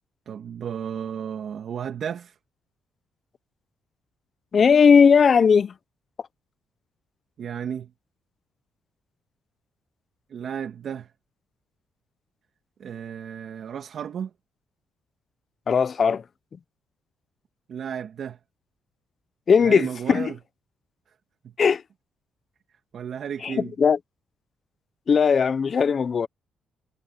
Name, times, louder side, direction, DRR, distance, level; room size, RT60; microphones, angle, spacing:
voice 1, 0.3-2.3 7.4-7.9 10.3-11.1 12.8-14.3 17.7-18.4 19.6-20.4 21.4-21.5 22.9-23.7, right 8 dB, 60° right, 2.2 m, -33 dB
voice 2, 4.5-5.7 15.7-16.2 19.5-20.3 21.6-21.8 23.4-24.0 25.1-26.3, left 6 dB, 45° left, 0.7 m, -18 dB
cardioid pair, 90°, 0 cm